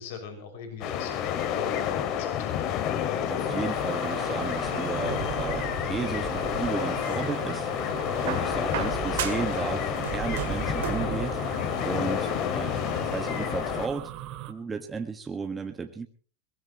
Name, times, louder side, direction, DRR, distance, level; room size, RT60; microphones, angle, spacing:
voice 1, 0.0-2.5 8.7-9.0 10.9-11.2, left 6 dB, 70° left, 6 dB, 6.0 m, -41 dB
sound 1, 0.8-13.9, left 9 dB, 50° left, 2.3 m, -29 dB
voice 2, 3.3-7.7 8.2-11.4 11.8-12.8 13.1-14.1 14.5-16.1, right 5 dB, 20° right, 4 dB, 1.6 m, -34 dB
sound 2, 3.5-14.5, right 12 dB, 50° right, 2.2 m, -37 dB
sound 3, 6.5-7.5 8.3-9.6 9.9-11.1 12.2-12.3, right 12 dB, 75° right, 2.1 m, -36 dB
22.0 x 19.0 x 3.1 m, 0.42 s
hypercardioid pair, 105°, 0 cm